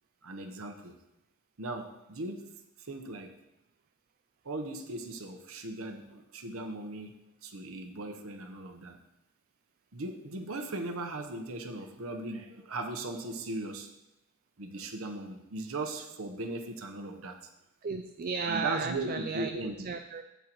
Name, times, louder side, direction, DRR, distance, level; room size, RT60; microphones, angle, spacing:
voice 1, 0.2-0.9 1.6-2.5 2.8-3.3 4.4-7.2 7.4-9.0 9.9-13.9 14.6-17.4 18.5-19.8, right 2 dB, 70° right, 5 dB, 1.0 m, -38 dB
voice 2, 17.8-20.2, right 5 dB, 40° right, 6 dB, 0.4 m, -35 dB
12.5 x 8.3 x 3.0 m, 0.91 s
head